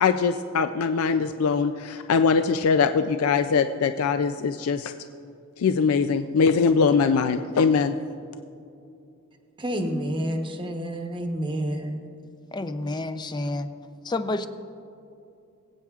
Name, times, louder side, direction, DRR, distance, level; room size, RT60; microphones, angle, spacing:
voice 1, 0.0-4.9 5.6-8.0, left 5 dB, 90° left, 0.4 m, -22 dB
voice 2, 9.6-12.0, equal, 25° right, 0.9 m, -29 dB
voice 3, 12.5-13.7 14.0-14.5, left 2 dB, 20° left, 0.4 m, -29 dB
22.5 x 8.6 x 2.4 m
head